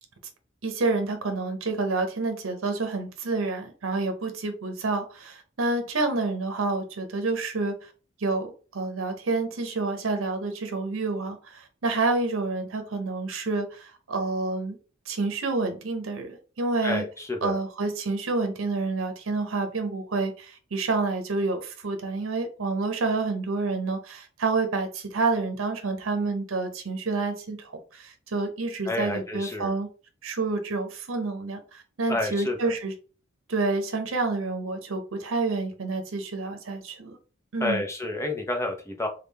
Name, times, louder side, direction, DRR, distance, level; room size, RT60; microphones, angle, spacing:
voice 1, 0.6-7.7 8.2-14.8 15.1-17.0 17.4-29.9 30.2-32.9 33.5-37.2 37.5-37.8, right 3 dB, 80° right, 0.7 m, -28 dB
voice 2, 16.8-17.6 28.9-29.7 32.1-32.7 37.6-39.1, left 2 dB, 15° left, 0.6 m, -29 dB
3.5 x 2.3 x 3.3 m
head